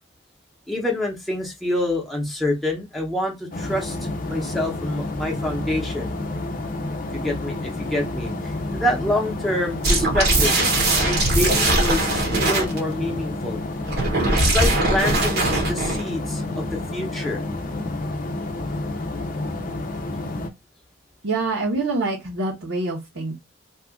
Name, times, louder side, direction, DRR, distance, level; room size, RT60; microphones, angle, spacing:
voice 1, 0.7-6.2 7.1-10.6 11.0-13.6 14.3-17.4, left 1 dB, ahead, 0.8 m, -27 dB
sound 1, 3.5-20.5, left 2 dB, 40° left, 0.6 m, -30 dB
sound 2, 9.8-12.8 13.9-16.1, right 2 dB, 50° right, 0.8 m, -20 dB
voice 2, 21.2-23.3, right 3 dB, 80° right, 1.0 m, -25 dB
2.7 x 2.4 x 3.6 m
head